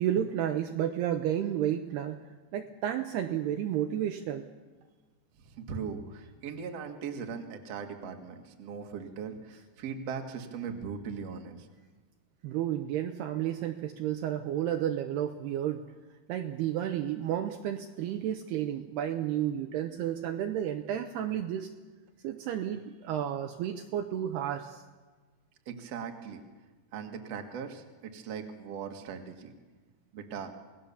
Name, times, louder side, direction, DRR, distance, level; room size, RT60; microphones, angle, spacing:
voice 1, 0.0-2.2 2.5-4.5 12.4-15.9 16.3-21.7 22.2-24.8, right 10 dB, 75° right, 5 dB, 2.6 m, -31 dB
voice 2, 5.5-11.6 25.7-26.4 26.9-29.5 30.1-30.5, right 6 dB, 50° right, 4 dB, 2.2 m, -39 dB
27.5 x 18.5 x 7.0 m, 1.3 s
omnidirectional pair, 5.3 m